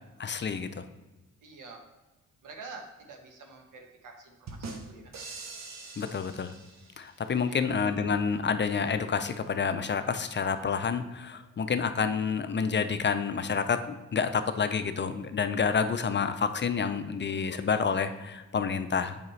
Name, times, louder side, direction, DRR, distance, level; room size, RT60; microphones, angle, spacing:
voice 1, 0.2-0.8 6.0-6.5 7.0-19.2, left 6 dB, 35° left, 10 dB, 0.5 m, -29 dB
voice 2, 1.4-1.8 2.4-5.2 7.4-7.7, right 4 dB, 85° right, 3 dB, 1.1 m, -47 dB
sound 1, 4.5-7.3, right 3 dB, 60° right, 0.9 m, -43 dB
7.1 x 5.1 x 3.2 m, 1.1 s
cardioid pair, 80°, 31 cm